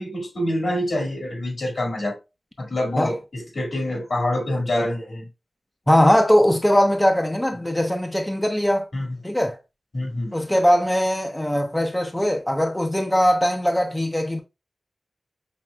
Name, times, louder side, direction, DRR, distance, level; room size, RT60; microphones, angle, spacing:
voice 1, 0.0-2.2 2.6-5.3 8.9-9.2 9.9-10.3, left 1 dB, 70° left, 1.9 m, -26 dB
voice 2, 5.9-8.9 9.2-9.6 10.3-14.4, equal, 10° left, 0.7 m, -20 dB
5.9 x 3.0 x 2.2 m
cardioid pair, 50°, 0 cm